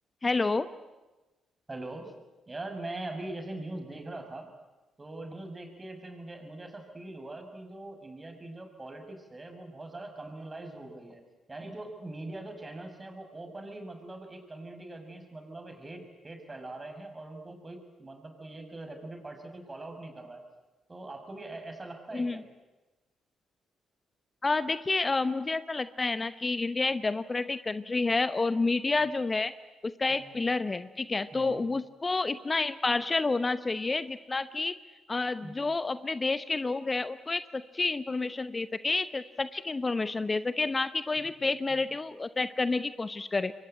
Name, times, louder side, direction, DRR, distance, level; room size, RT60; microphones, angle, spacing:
voice 1, 0.2-0.7 22.1-22.4 24.4-29.5 29.8-34.7 35.1-43.5, left 3 dB, 30° left, 13 dB, 0.9 m, -29 dB
voice 2, 1.7-2.1 2.5-4.5 5.0-11.2 11.5-20.4 20.9-22.4 29.0-29.1 30.1-30.4 31.3-31.6 35.4-35.6 41.2-41.3 41.7-41.8, right 2 dB, 25° right, 5 dB, 6.4 m, -42 dB
27.5 x 23.0 x 9.2 m, 1.1 s
hypercardioid pair, 40°, 0 cm